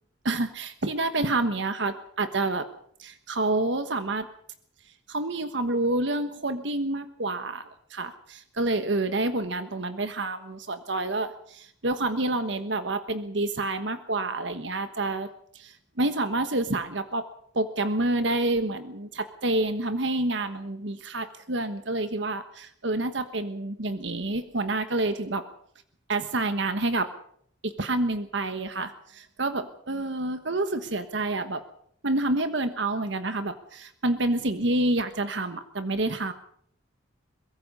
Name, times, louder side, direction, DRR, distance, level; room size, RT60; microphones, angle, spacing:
voice 1, 0.2-2.6 3.0-4.3 5.1-7.6 7.9-15.3 15.5-17.2 17.5-25.4 26.1-27.1 27.6-31.6 32.0-36.3, right 2 dB, 70° right, 10 dB, 1.3 m, -28 dB
23.0 x 21.5 x 5.5 m, 0.65 s
head